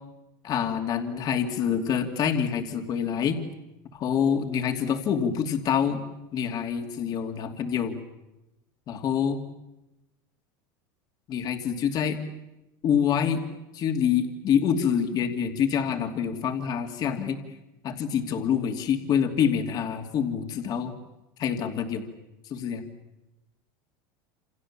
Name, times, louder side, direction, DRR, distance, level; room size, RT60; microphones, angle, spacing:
voice 1, 0.4-3.4 3.9-6.0 6.3-8.0 8.9-9.4 11.3-12.2 12.8-13.4 13.7-17.4 17.8-20.9 21.4-22.1 22.4-22.8, left 8 dB, 40° left, 5 dB, 2.7 m, -26 dB
28.5 x 27.5 x 7.4 m, 0.96 s
supercardioid pair, 135°, 10 cm